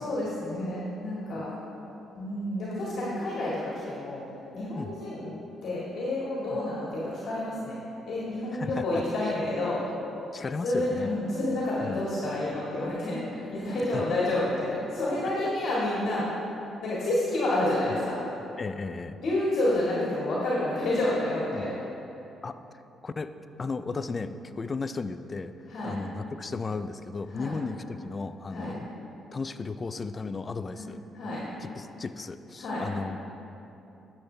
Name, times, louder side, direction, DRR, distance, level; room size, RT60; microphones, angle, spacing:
voice 1, 0.0-1.5 2.1-4.2 4.5-5.4 5.6-7.8 8.1-9.8 10.6-16.3 16.8-18.2 19.2-21.7 25.7-26.0 27.3-27.5 28.5-28.7 30.7-30.9 31.1-31.4 32.6-32.8, left 1 dB, 65° left, -7 dB, 1.9 m, -29 dB
voice 2, 8.5-9.0 10.3-11.1 11.8-12.0 13.9-14.2 17.9-18.0 18.6-19.2 21.5-21.7 22.4-22.6 23.0-28.9 29.3-31.0 31.6-33.2, left 4 dB, 35° left, 11 dB, 0.4 m, -35 dB
12.0 x 7.1 x 3.3 m, 3.0 s
cardioid pair, 90°, 0 cm